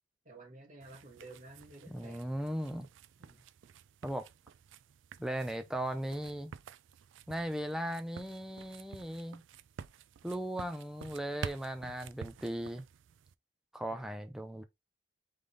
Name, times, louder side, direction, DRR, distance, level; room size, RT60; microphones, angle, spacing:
voice 1, 0.2-2.3 3.2-3.4 13.9-14.1, right 2 dB, 40° right, 1.5 m, -52 dB
sound 1, 0.8-13.3, right 6 dB, 75° right, 0.3 m, -50 dB
voice 2, 1.9-2.9 4.0-4.3 5.2-6.5 7.3-9.4 10.2-12.8 13.7-14.6, right 1 dB, 5° right, 0.5 m, -37 dB
3.7 x 3.3 x 3.8 m
head